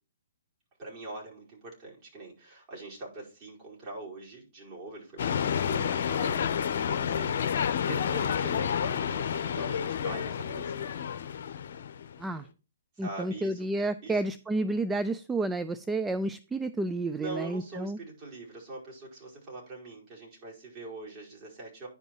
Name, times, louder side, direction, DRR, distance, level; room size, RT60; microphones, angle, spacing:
voice 1, 0.8-11.0 12.9-13.7 14.0-14.3 17.1-21.9, right 2 dB, 35° right, -4 dB, 4.9 m, -43 dB
sound 1, 5.2-12.2, left 8 dB, 60° left, 0.9 m, -30 dB
voice 2, 13.0-18.0, right 2 dB, 10° right, 12 dB, 0.4 m, -30 dB
10.0 x 5.4 x 4.5 m, 0.34 s
hypercardioid pair, 130°, 0 cm